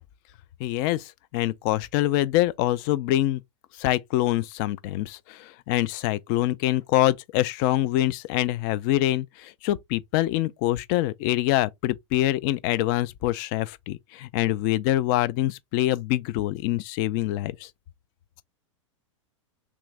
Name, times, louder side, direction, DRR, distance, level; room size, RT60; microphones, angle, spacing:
voice 1, 0.6-3.4 3.8-17.7, left 15 dB, 40° left, 0.4 m, -25 dB
3.0 x 2.5 x 3.1 m
hypercardioid pair, 105°, 16 cm